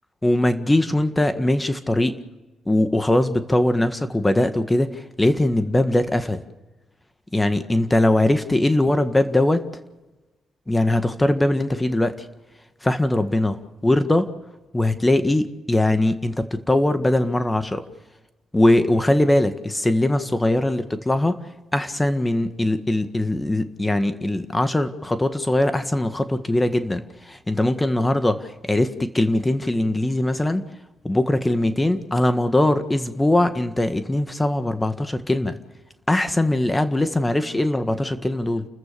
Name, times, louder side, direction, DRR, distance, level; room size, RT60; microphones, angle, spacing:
voice 1, 0.2-2.1 2.7-6.4 7.3-9.6 10.7-12.3 12.8-14.3 14.7-17.8 18.5-21.4 21.7-30.6 31.0-35.6 36.1-38.7, left 1 dB, 15° left, 10 dB, 1.7 m, -21 dB
30.0 x 14.5 x 6.9 m, 1.1 s
supercardioid pair, 50°, 0 cm